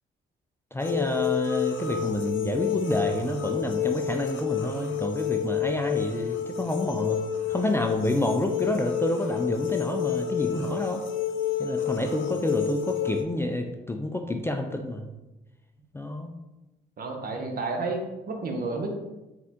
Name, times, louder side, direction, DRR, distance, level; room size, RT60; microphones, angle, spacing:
voice 1, 0.7-7.2 7.5-11.0 11.6-15.1 15.9-16.3, left 1 dB, 10° left, 3 dB, 0.3 m, -28 dB
sound 1, 0.8-13.2, left 8 dB, 75° left, 0.5 m, -29 dB
voice 2, 17.0-18.9, right 3 dB, 50° right, 3 dB, 0.8 m, -31 dB
4.0 x 3.6 x 2.8 m, 1.0 s
cardioid pair, 90°, 20 cm